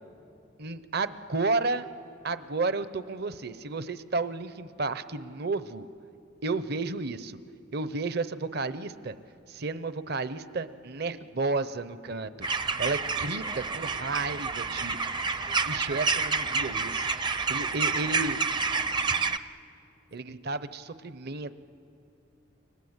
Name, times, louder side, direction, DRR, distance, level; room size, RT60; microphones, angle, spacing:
voice 1, 0.6-1.9 2.2-5.9 6.4-7.4 7.7-9.2 9.5-12.5 12.8-15.0 15.7-17.1 17.5-18.4 20.1-21.5, right 3 dB, 55° right, 13 dB, 0.8 m, -32 dB
sound 1, 12.4-19.4, right 4 dB, 25° right, 0.5 m, -29 dB
29.0 x 24.5 x 8.2 m, 2.6 s
head